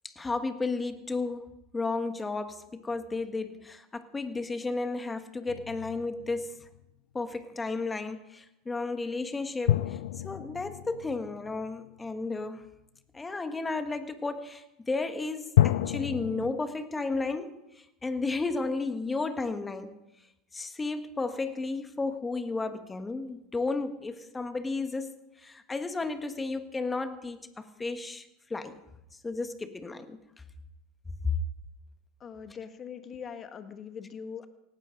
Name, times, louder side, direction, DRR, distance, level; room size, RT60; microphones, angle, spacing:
voice 1, 0.0-6.7 7.1-10.0 10.2-12.6 13.1-17.6 18.0-19.9 20.5-25.1 25.4-28.8 29.2-30.2, left 3 dB, 15° left, 9 dB, 1.6 m, -33 dB
sound 1, 5.5-6.8 9.6-12.2 15.6-16.5, left 13 dB, 70° left, 0.5 m, -29 dB
voice 2, 32.2-34.5, left 7 dB, 35° left, 8 dB, 1.7 m, -42 dB
18.0 x 16.5 x 3.9 m, 0.89 s
hypercardioid pair, 85°, 0 cm